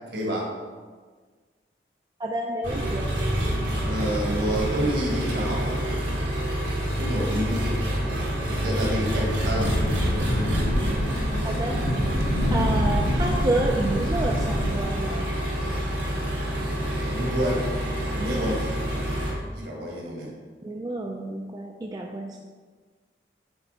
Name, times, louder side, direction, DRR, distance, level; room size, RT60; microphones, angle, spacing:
voice 1, 0.1-0.5 3.8-5.8 6.9-7.6 8.0-9.7 17.1-17.6 18.0-18.7 19.5-20.3, equal, 70° right, -3 dB, 1.6 m, -29 dB
voice 2, 2.2-3.1 11.4-11.8 12.5-15.3 20.6-22.4, right 2 dB, 20° right, 1 dB, 0.3 m, -29 dB
Engine, 2.6-19.3, equal, 85° right, 1.8 m, -27 dB
sound 1, 9.3-14.8, equal, 65° left, 0.7 m, -27 dB
7.9 x 4.5 x 2.8 m, 1.5 s
head